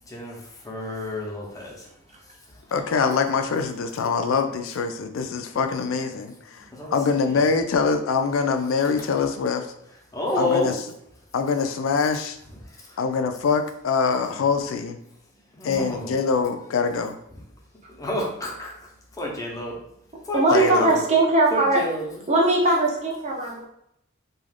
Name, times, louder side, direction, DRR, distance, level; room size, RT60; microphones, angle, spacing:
voice 1, 0.0-1.9 2.5-2.6 5.5-5.9 6.7-7.4 9.1-9.2 10.1-10.8 12.9-13.0 14.3-14.4 15.6-16.1 17.9-18.7 19.2-19.8 20.2-21.0 21.5-22.0, left 1 dB, 15° left, -2 dB, 0.7 m, -30 dB
voice 2, 2.7-6.3 6.9-9.6 10.4-10.7 11.3-12.4 13.0-15.0 15.6-17.1 20.5-20.9, left 5 dB, 75° left, 7 dB, 0.4 m, -24 dB
voice 3, 20.3-21.8 22.3-23.7, right 2 dB, 35° right, -2 dB, 0.6 m, -20 dB
2.4 x 2.3 x 3.3 m, 0.76 s
head